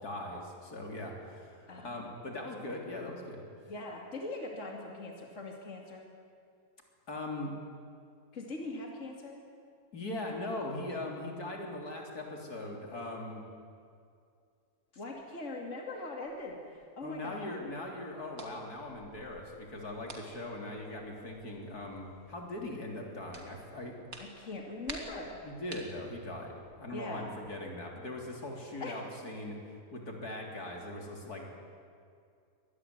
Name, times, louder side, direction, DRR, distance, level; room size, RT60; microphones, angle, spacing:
voice 1, 0.0-3.4 7.1-7.5 9.9-13.4 17.0-24.0 25.4-29.6 29.9-31.5, left 1 dB, 80° left, 1 dB, 4.0 m, -40 dB
voice 2, 1.7-2.2 3.7-6.1 8.3-9.4 15.0-17.5 24.2-25.4 26.9-27.3 28.8-29.0, left 2 dB, 50° left, 1 dB, 2.8 m, -41 dB
sound 1, 16.2-27.5, right 2 dB, 65° right, 3.1 m, -52 dB
24.0 x 19.5 x 9.7 m, 2.3 s
omnidirectional pair, 1.6 m